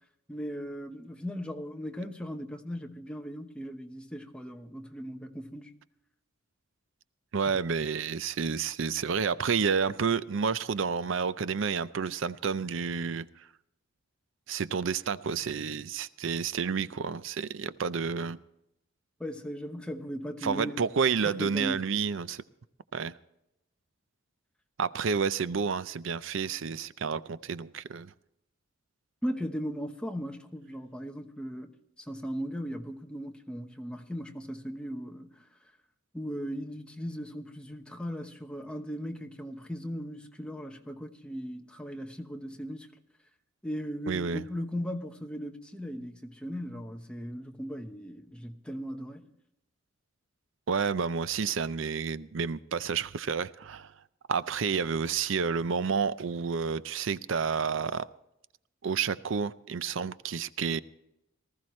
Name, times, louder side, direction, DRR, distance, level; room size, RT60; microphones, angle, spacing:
voice 1, 0.3-5.7 19.2-20.8 21.2-21.8 29.2-35.4 36.1-42.9 43.6-49.3, equal, 5° left, 1.0 m, -38 dB
voice 2, 7.3-13.5 14.5-18.4 20.4-22.4 22.9-23.1 24.8-28.1 44.1-44.4 50.7-53.9 54.3-58.1 58.8-60.8, right 6 dB, 65° right, 0.5 m, -30 dB
19.5 x 14.0 x 3.2 m
head